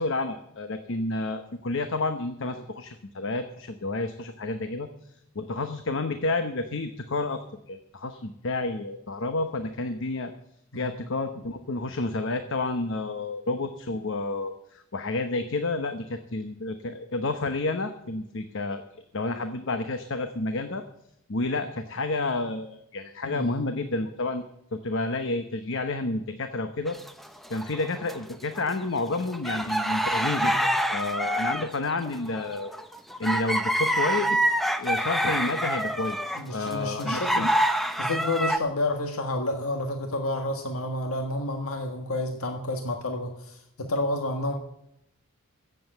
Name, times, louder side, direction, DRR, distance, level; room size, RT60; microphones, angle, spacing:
voice 1, 0.0-4.9 5.3-7.4 7.7-10.3 10.7-18.8 19.1-20.8 21.3-24.4 24.7-27.0 27.5-30.6 30.9-32.7 33.2-34.5 34.8-37.5, left 2 dB, 60° left, 8 dB, 1.0 m, -30 dB
voice 2, 23.2-23.6 30.5-30.6 36.3-37.5 38.0-44.6, left 2 dB, 85° left, 4 dB, 1.6 m, -30 dB
sound 1, 26.9-28.2 28.6-38.6, equal, ahead, 0.8 m, -27 dB
15.5 x 7.8 x 7.8 m, 0.77 s
head